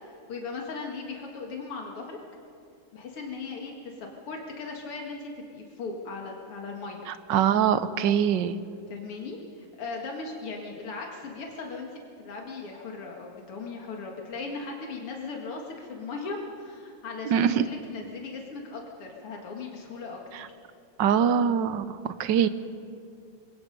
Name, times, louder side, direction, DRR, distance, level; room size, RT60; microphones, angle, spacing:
voice 1, 0.0-2.2 2.9-7.1 8.9-20.5, left 4 dB, 85° left, 0 dB, 2.8 m, -38 dB
voice 2, 7.3-8.6 17.3-17.6 21.0-22.5, right 8 dB, 65° right, 13 dB, 1.3 m, -23 dB
27.5 x 22.5 x 5.3 m, 2.5 s
omnidirectional pair, 2.4 m